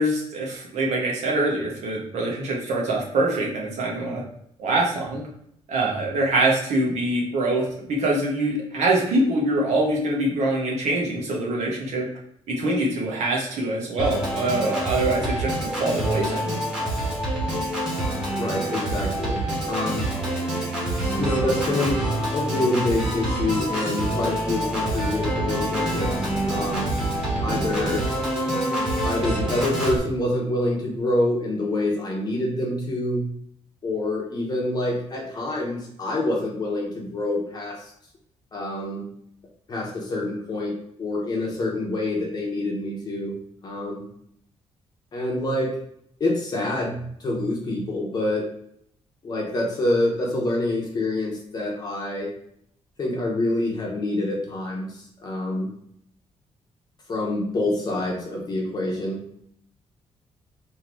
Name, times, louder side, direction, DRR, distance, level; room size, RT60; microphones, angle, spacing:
voice 1, 0.0-4.2 4.6-5.2 5.7-12.1 12.5-16.5, right 2 dB, 75° right, -2 dB, 1.2 m, -24 dB
Organ, 14.0-30.0, right 1 dB, 5° right, 1.2 m, -26 dB
voice 2, 18.3-20.1 21.1-26.9 27.4-28.0 29.0-33.3 33.8-37.9 38.5-39.0 39.7-43.4 43.6-44.0 45.1-45.7 46.2-48.4 49.2-52.3 53.0-55.7 57.1-59.2, left 1 dB, 35° left, -2 dB, 0.9 m, -26 dB
3.8 x 2.8 x 4.5 m, 0.72 s
cardioid pair, 160°, 12 cm